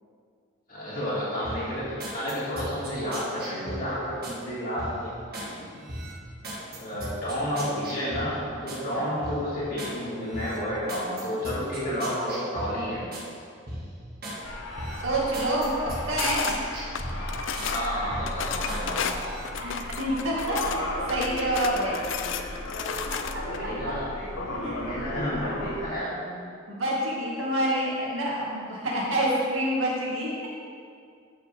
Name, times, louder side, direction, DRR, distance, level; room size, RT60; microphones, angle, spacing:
voice 1, 0.7-5.8 6.7-13.1 17.7-19.1 23.6-26.4, equal, 40° left, -11 dB, 2.3 m, -31 dB
sound 1, 1.4-4.4 4.8-5.5 5.9-8.8 9.2-10.0 10.3-13.3 13.7-14.4 14.8-17.7 18.1-18.8 19.2-19.5, right 1 dB, 45° right, 1.8 m, -38 dB
sound 2, 14.4-25.8, left 1 dB, 85° left, 1.2 m, -35 dB
voice 2, 15.0-16.6 19.5-22.0 23.1-23.2 24.5-24.9 26.7-30.5, right 1 dB, 70° right, -4 dB, 2.1 m, -27 dB
sound 3, 16.2-16.6 16.9-17.9 18.3-20.8 21.1-23.6, left 7 dB, 65° left, 0.5 m, -33 dB
13.5 x 5.8 x 3.6 m, 2.3 s
head